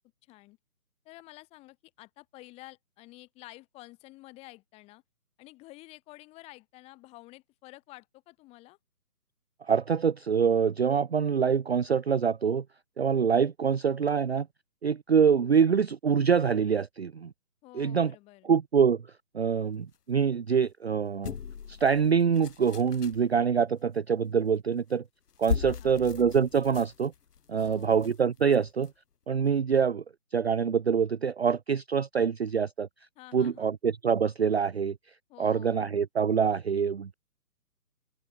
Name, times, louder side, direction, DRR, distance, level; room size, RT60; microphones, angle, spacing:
voice 1, 0.2-0.6 1.1-5.0 5.4-8.8 17.6-18.5 25.6-26.0 27.5-28.1 33.2-33.8 35.3-35.9, left 20 dB, 15° left, 3.6 m, -51 dB
voice 2, 9.6-12.6 13.0-14.5 14.8-17.3 17.7-18.1 18.4-19.0 19.3-21.3 21.7-25.0 25.4-27.1 27.5-28.9 29.3-30.0 30.3-32.9 33.3-35.0 35.4-37.1, right 6 dB, 45° right, 0.6 m, -25 dB
sound 1, 21.2-23.3 24.8-24.9 25.3-28.9 29.4-29.6, left 7 dB, 80° left, 1.1 m, -38 dB
open air
hypercardioid pair, 160°, 46 cm